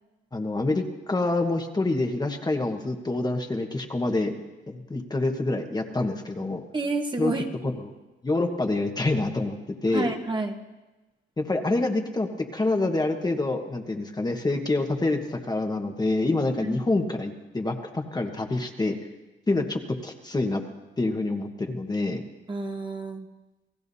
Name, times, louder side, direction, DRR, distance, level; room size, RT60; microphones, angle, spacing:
voice 1, 0.3-4.3 4.7-6.6 7.2-7.3 7.6-7.9 8.2-10.1 11.4-19.0 19.5-20.6 21.0-22.2, left 2 dB, 20° left, 4 dB, 1.4 m, -27 dB
voice 2, 6.7-7.4 9.9-10.6 16.6-16.8 22.5-23.3, right 3 dB, 25° right, 3 dB, 1.4 m, -29 dB
28.5 x 16.5 x 2.8 m, 1.1 s
cardioid pair, 90°, 20 cm